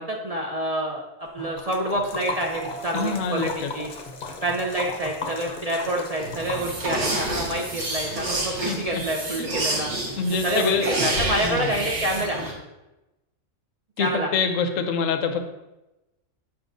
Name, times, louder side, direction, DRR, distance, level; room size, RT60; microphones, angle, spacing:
voice 1, 0.0-3.9 4.4-9.9 10.4-12.4 14.0-14.3, right 1 dB, 45° right, -1 dB, 0.5 m, -27 dB
Liquid, 1.4-8.5, left 4 dB, 50° left, 0.7 m, -36 dB
sound 1, 2.5-6.2 6.5-6.6, right 5 dB, 90° right, 1.6 m, -43 dB
voice 2, 2.9-3.7 8.7-9.0 10.1-10.9 11.4-11.7 14.0-15.5, left 5 dB, 80° left, 7 dB, 1.0 m, -25 dB
sound 2, 6.2-12.5, right 1 dB, 65° right, 1.5 m, -29 dB
7.1 x 5.7 x 2.5 m, 0.99 s
omnidirectional pair, 1.3 m